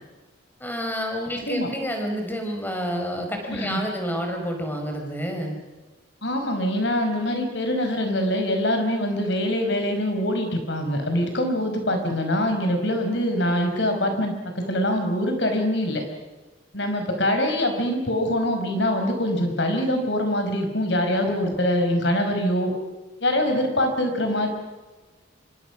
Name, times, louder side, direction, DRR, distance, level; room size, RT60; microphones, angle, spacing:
voice 1, 0.6-5.6 21.2-21.6, equal, 10° left, 3 dB, 4.7 m, -29 dB
voice 2, 3.5-3.8 6.2-16.0 16.7-22.7 23.2-24.5, left 1 dB, 60° left, 5 dB, 5.1 m, -24 dB
26.5 x 25.0 x 6.1 m, 1.2 s
head